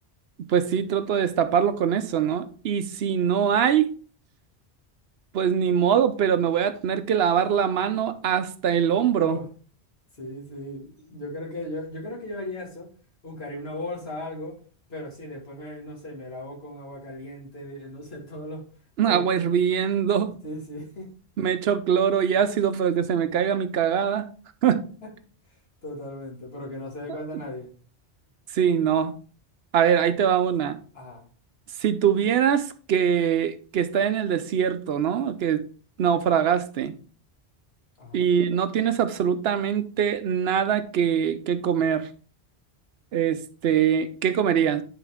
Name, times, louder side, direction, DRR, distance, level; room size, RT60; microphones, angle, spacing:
voice 1, 0.5-3.9 5.3-9.4 19.0-20.4 21.4-24.3 24.6-24.8 28.5-29.1 29.7-30.8 31.8-35.6 36.0-36.9 38.1-42.1 43.1-44.8, right 8 dB, 70° right, 0.8 m, -23 dB
voice 2, 9.1-9.5 10.2-12.9 13.2-14.6 14.9-18.6 19.1-19.5 20.4-21.1 25.0-25.1 25.8-27.7 30.9-31.2 38.0-38.3, left 1 dB, 65° left, 2.4 m, -37 dB
10.0 x 3.8 x 3.5 m
omnidirectional pair, 1.1 m